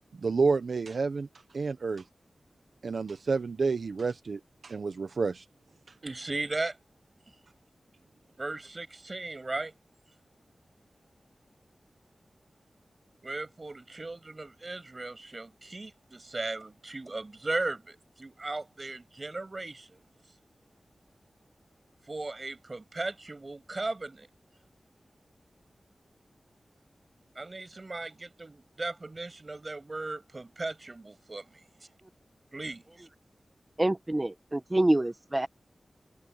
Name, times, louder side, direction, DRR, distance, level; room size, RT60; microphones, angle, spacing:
voice 1, 0.2-1.3 1.5-2.0 2.8-5.4, right 4 dB, 70° right, 0.9 m, -29 dB
voice 2, 6.0-6.8 8.4-9.7 13.2-20.0 22.1-24.3 27.3-31.5 32.5-33.1, right 2 dB, 35° right, 6.5 m, -37 dB
voice 3, 33.8-35.5, right 1 dB, 20° right, 1.1 m, -26 dB
wide cardioid pair, 90°, 0 cm